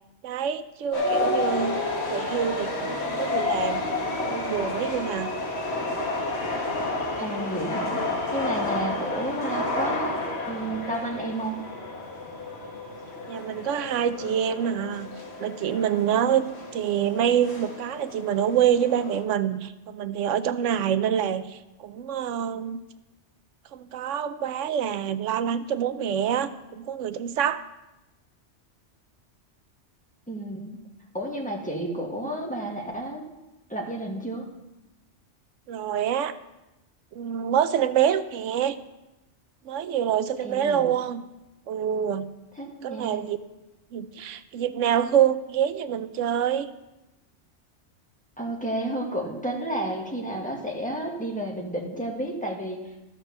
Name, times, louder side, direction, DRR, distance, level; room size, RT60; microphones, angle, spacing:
voice 1, 0.2-1.8 2.1-5.3 8.7-8.9 13.3-15.1 15.4-16.5 16.7-22.8 23.7-27.6 35.7-36.3 37.1-38.8 39.7-41.2 41.7-42.3 42.8-43.4 43.9-46.7, right 9 dB, 90° right, 12 dB, 1.0 m, -26 dB
sound 1, 0.9-19.2, left 2 dB, 60° left, 1.8 m, -30 dB
voice 2, 7.2-8.0 8.3-10.2 10.5-11.6 30.3-30.8 31.1-33.2 33.7-34.4 40.4-40.8 42.6-43.2 48.4-52.8, right 1 dB, 5° left, -2 dB, 1.7 m, -31 dB
13.5 x 6.1 x 6.7 m, 1.0 s
omnidirectional pair, 1.2 m